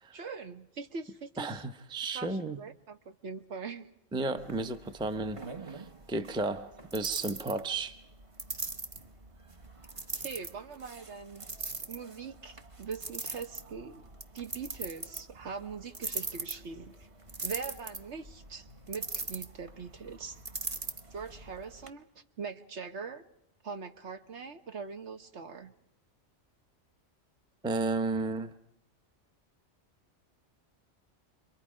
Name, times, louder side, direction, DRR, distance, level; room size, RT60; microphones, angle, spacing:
voice 1, 0.1-1.6 2.1-3.9 10.1-11.5 11.9-14.0 14.3-16.9 17.4-20.4 21.1-23.3 23.6-25.7, right 5 dB, 70° right, 1.4 m, -42 dB
voice 2, 1.4-2.6 4.1-5.4 5.7-8.0 27.6-28.5, right 3 dB, 5° right, 0.6 m, -33 dB
sound 1, 4.4-21.9, right 3 dB, 30° right, 1.0 m, -42 dB
29.0 x 23.5 x 5.0 m
omnidirectional pair, 1.2 m